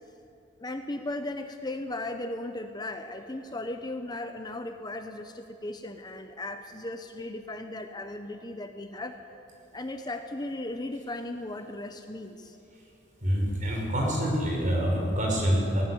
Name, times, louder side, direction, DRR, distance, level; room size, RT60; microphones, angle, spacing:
voice 1, 0.6-9.2 9.7-12.6, left 2 dB, 20° left, 6 dB, 0.9 m, -36 dB
voice 2, 13.2-15.8, equal, 40° right, -1 dB, 5.5 m, -26 dB
19.0 x 19.0 x 7.9 m, 2.9 s
head